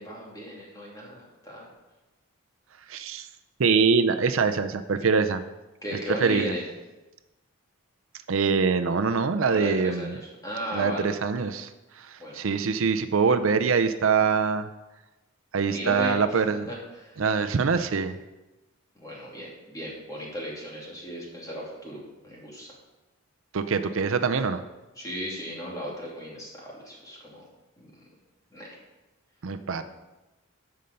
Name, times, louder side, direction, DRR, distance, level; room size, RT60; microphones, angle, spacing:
voice 1, 0.0-1.7 5.8-6.7 9.5-11.1 12.2-12.4 15.7-17.2 18.9-22.7 24.9-27.5 27.8-28.0 28.5-28.7 29.7-29.8, equal, 15° left, -4 dB, 2.7 m, -36 dB
voice 2, 2.9-3.3 3.6-5.4 6.2-6.5 8.3-10.1 10.7-11.7 12.0-14.7 15.5-16.7 17.2-18.2 23.5-24.6 29.4-29.8, right 5 dB, 65° right, 9 dB, 0.5 m, -24 dB
14.5 x 5.5 x 5.3 m, 1.1 s
head